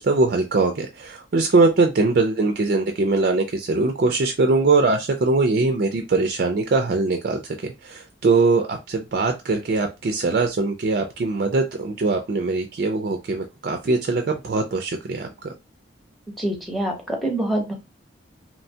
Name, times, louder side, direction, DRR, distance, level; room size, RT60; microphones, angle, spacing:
voice 1, 0.0-15.5, right 3 dB, 50° right, 5 dB, 0.3 m, -21 dB
voice 2, 16.4-17.7, right 1 dB, ahead, 0 dB, 0.7 m, -25 dB
3.0 x 2.1 x 2.7 m, 0.25 s
head